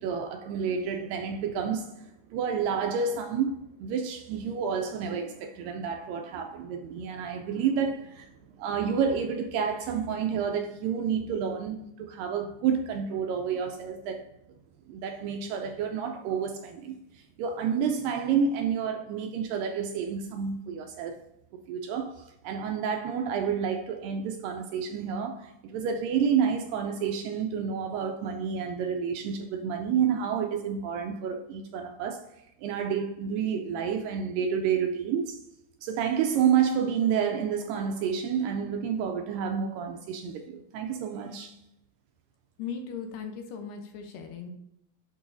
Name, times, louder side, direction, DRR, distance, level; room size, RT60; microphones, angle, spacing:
voice 1, 0.0-8.3 8.6-14.3 14.9-21.2 21.7-32.2 32.6-35.4 35.8-41.6, right 7 dB, 80° right, 2.1 m, -29 dB
voice 2, 42.6-44.5, left 6 dB, 75° left, 2.3 m, -38 dB
11.0 x 4.6 x 2.6 m
omnidirectional pair, 4.3 m